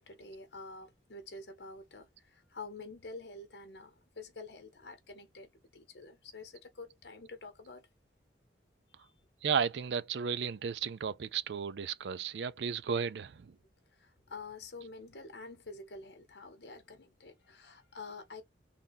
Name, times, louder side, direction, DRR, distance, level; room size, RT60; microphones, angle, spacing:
voice 1, 0.0-7.9 14.0-18.4, left 3 dB, 80° left, 1.0 m, -48 dB
voice 2, 9.4-13.5, right 6 dB, 80° right, 0.4 m, -34 dB
3.5 x 2.3 x 4.0 m
head